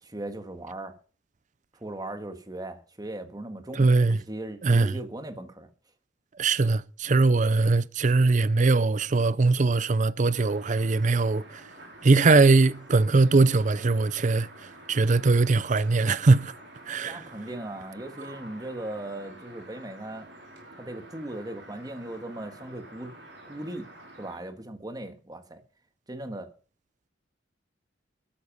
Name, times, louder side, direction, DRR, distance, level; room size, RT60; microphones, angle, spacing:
voice 1, 0.0-0.9 1.7-5.7 17.0-20.3 20.7-23.1 23.5-23.9 24.2-25.6 26.1-26.5, right 1 dB, 20° right, 1.6 m, -38 dB
voice 2, 3.8-4.2 4.6-4.9 6.4-11.6 12.0-14.5 14.9-16.5 16.9-17.2, right 3 dB, 40° right, 0.5 m, -21 dB
sound 1, 10.3-24.4, right 1 dB, 65° right, 4.9 m, -49 dB
13.0 x 9.6 x 5.4 m
head